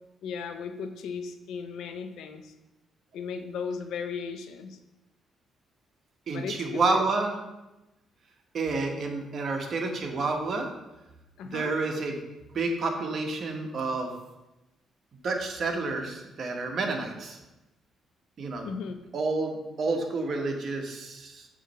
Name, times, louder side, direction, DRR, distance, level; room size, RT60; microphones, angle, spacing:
voice 1, 0.2-2.5 3.1-4.8 6.3-7.0 11.4-11.7 18.6-19.0, left 6 dB, 80° left, 8 dB, 0.5 m, -36 dB
voice 2, 6.3-7.3 8.5-10.7 11.4-12.2 12.5-14.1 15.2-17.4 18.4-18.7 19.1-21.5, right 3 dB, 55° right, 2 dB, 1.2 m, -29 dB
7.4 x 3.1 x 5.6 m, 1.0 s
cardioid pair, 90°, 0 cm